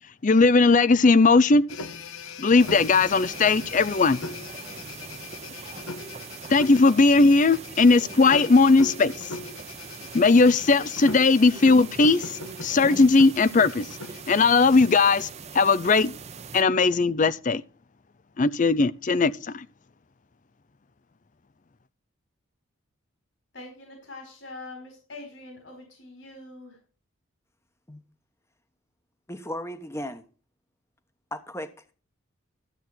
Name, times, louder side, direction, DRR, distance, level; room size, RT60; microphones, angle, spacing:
voice 1, 0.2-1.6 2.4-4.2 6.5-9.1 10.1-13.8 14.3-15.3 15.5-16.1 16.5-17.6 18.4-19.6, left 3 dB, 40° left, 0.5 m, -18 dB
sound 1, 1.7-15.2, left 3 dB, 85° left, 1.2 m, -40 dB
sound 2, 2.6-16.6, right 5 dB, 30° right, 0.8 m, -41 dB
voice 2, 23.5-26.8, left 2 dB, 60° left, 4.5 m, -43 dB
voice 3, 29.3-30.2 31.3-31.7, left 1 dB, 15° left, 1.1 m, -35 dB
13.0 x 8.0 x 4.3 m
head